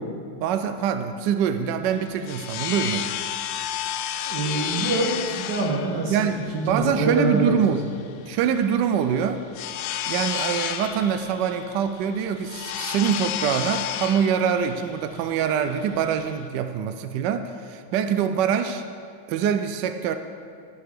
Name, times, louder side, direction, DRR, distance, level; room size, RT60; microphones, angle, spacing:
voice 1, 0.4-3.1 6.1-7.8 8.3-9.4 10.1-18.8 19.3-20.2, right 8 dB, 80° right, 9 dB, 1.0 m, -24 dB
sound 1, 1.9-16.5, left 10 dB, 85° left, 1.5 m, -32 dB
voice 2, 4.3-7.6, right 2 dB, 55° right, -2 dB, 2.4 m, -25 dB
13.5 x 5.8 x 6.6 m, 2.2 s
omnidirectional pair, 2.4 m